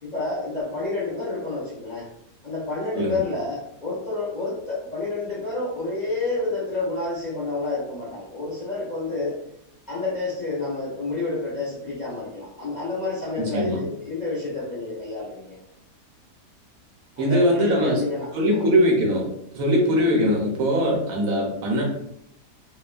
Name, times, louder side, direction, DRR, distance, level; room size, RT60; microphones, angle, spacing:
voice 1, 0.0-2.1 2.4-9.4 9.9-15.6 17.2-18.7 19.6-20.0, left 3 dB, 85° left, -7 dB, 0.3 m, -29 dB
voice 2, 13.4-13.8 17.2-18.0 18.3-19.3 19.5-21.8, equal, 70° right, -1 dB, 0.9 m, -21 dB
2.9 x 2.1 x 2.3 m, 0.76 s
omnidirectional pair, 1.8 m